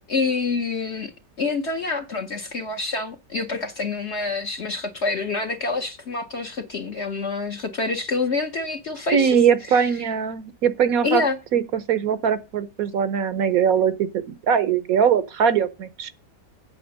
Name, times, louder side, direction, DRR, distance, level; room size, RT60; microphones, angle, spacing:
voice 1, 0.1-1.1 1.4-9.4 9.7-9.8 11.0-11.4, left 3 dB, 50° left, 1.0 m, -27 dB
voice 2, 9.1-11.2 11.5-16.1, right 7 dB, 65° right, 1.0 m, -21 dB
8.7 x 5.6 x 6.4 m
omnidirectional pair, 1.8 m